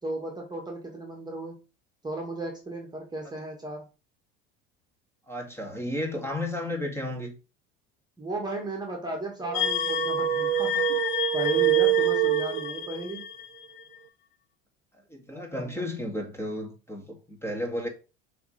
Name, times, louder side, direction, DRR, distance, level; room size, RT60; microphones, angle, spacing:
voice 1, 0.0-1.6 2.0-3.9 8.2-11.0 11.3-13.2 15.3-15.9, right 2 dB, 15° right, 1.8 m, -35 dB
voice 2, 5.3-7.3 15.1-17.9, left 1 dB, 10° left, 2.1 m, -33 dB
sound 1, 9.4-13.0, right 17 dB, 70° right, 0.5 m, -25 dB
sound 2, 9.5-14.0, left 10 dB, 90° left, 0.7 m, -31 dB
6.1 x 3.3 x 5.0 m
hypercardioid pair, 80°, 30 cm